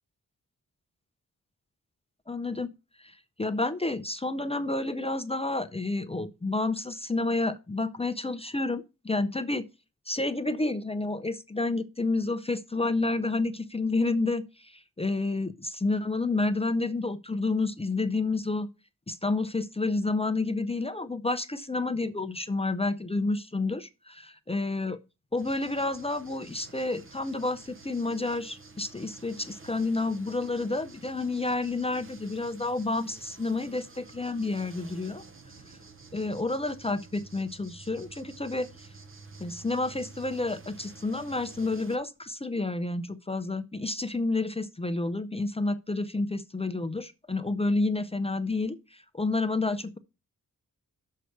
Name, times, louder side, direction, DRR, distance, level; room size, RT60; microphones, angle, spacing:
voice 1, 2.3-2.7 3.0-9.7 10.1-18.7 19.1-25.0 25.3-35.2 36.1-38.7 39.4-50.0, left 2 dB, 20° left, 0.5 m, -30 dB
sound 1, 25.4-42.0, right 4 dB, 40° right, 0.9 m, -50 dB
6.6 x 4.5 x 6.5 m
wide cardioid pair, 155°, 33 cm